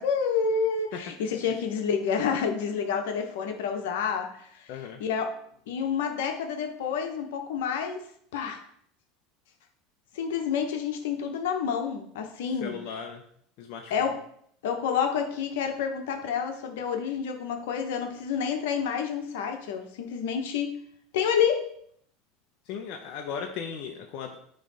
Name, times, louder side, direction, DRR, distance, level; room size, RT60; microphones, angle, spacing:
voice 1, 0.0-4.6 5.0-5.3 5.7-8.0 8.3-8.6 10.1-12.8 13.9-14.2 14.6-20.8 21.1-21.7, left 6 dB, 80° left, 4 dB, 1.1 m, -29 dB
voice 2, 4.7-5.0 12.6-13.2 13.6-14.1 22.7-24.4, left 7 dB, 60° left, 2 dB, 0.8 m, -37 dB
9.5 x 3.2 x 4.1 m, 0.66 s
supercardioid pair, 100°, 0 cm